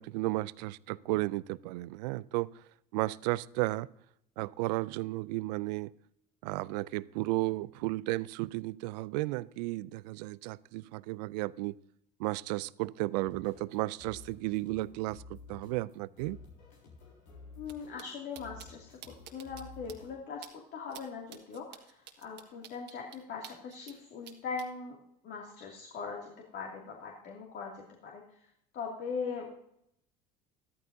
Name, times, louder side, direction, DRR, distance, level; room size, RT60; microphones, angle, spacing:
voice 1, 0.0-2.5 2.9-3.9 4.4-5.9 6.4-11.8 12.2-16.4, right 19 dB, 75° right, 0.4 m, -34 dB
sound 1, 13.2-20.2, left 4 dB, 85° left, 3.7 m, -53 dB
voice 2, 17.6-18.8 19.3-20.5 20.7-25.0 25.2-28.2 28.7-29.5, left 5 dB, 55° left, 2.5 m, -40 dB
sound 2, 17.6-17.7 18.0-18.1 18.3-18.7 19.0-19.6 19.9-20.0 20.4-20.5 20.9-21.0 21.3-24.0 24.2-24.7, right 11 dB, 55° right, 1.6 m, -49 dB
13.5 x 13.5 x 2.7 m
hypercardioid pair, 75°, 21 cm